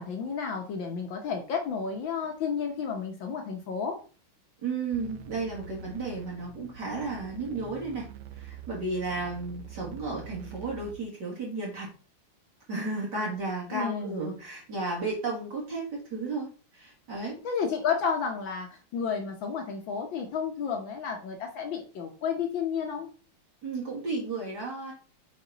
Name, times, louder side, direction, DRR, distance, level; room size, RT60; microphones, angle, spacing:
voice 1, 0.0-4.0 13.7-14.2 17.4-23.1, left 6 dB, 65° left, 3 dB, 1.6 m, -31 dB
voice 2, 4.6-8.1 8.3-11.9 12.7-17.4 23.6-24.9, right 3 dB, 55° right, -3 dB, 2.5 m, -33 dB
sound 1, 4.9-10.9, right 6 dB, 85° right, 1.7 m, -45 dB
8.7 x 4.2 x 3.9 m, 0.37 s
omnidirectional pair, 2.4 m